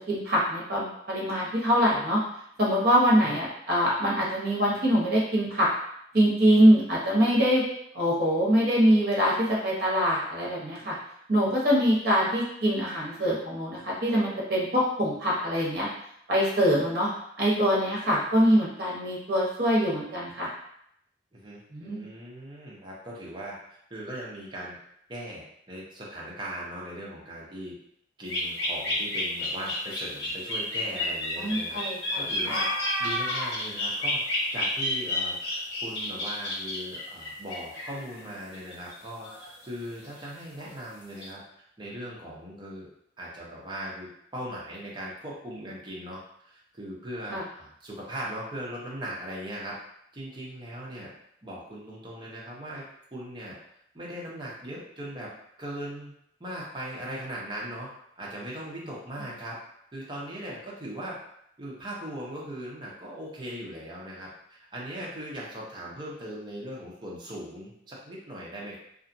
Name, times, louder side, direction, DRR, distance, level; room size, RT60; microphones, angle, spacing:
voice 1, 0.1-2.2 2.6-5.7 6.1-7.6 7.9-10.9 11.3-15.9 16.3-17.1 17.4-20.5 21.7-22.1 31.4-32.3 47.3-47.4, equal, 55° right, -5 dB, 0.9 m, -24 dB
voice 2, 21.3-23.6 23.9-24.8 25.1-27.8 28.2-31.8 32.2-34.2 34.5-41.4 41.8-42.9 43.2-49.8 50.1-51.1 51.4-52.8 53.1-53.6 53.9-55.3 55.6-56.1 56.4-57.9 58.2-59.6 59.9-61.2 61.6-68.8, right 1 dB, 25° right, -5 dB, 0.6 m, -39 dB
sound 1, 28.3-38.3 38.7-39.6 40.0-40.2 40.6-40.8 41.2-41.3, left 1 dB, 75° left, 1.1 m, -30 dB
2.8 x 2.3 x 2.6 m, 0.72 s
head